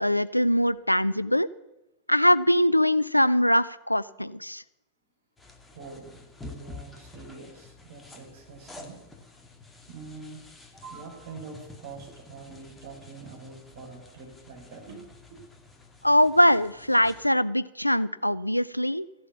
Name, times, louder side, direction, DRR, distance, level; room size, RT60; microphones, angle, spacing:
voice 1, 0.0-1.5 2.1-4.6 16.0-19.1, equal, 90° left, 18 dB, 0.4 m, -22 dB
sound 1, 5.4-17.3, left 2 dB, 15° left, 2.2 m, -49 dB
voice 2, 5.7-9.1 9.9-15.5, right 4 dB, 55° right, 1 dB, 5.1 m, -45 dB
15.0 x 11.0 x 7.3 m, 0.94 s
figure-of-eight pair, 90°, 0 cm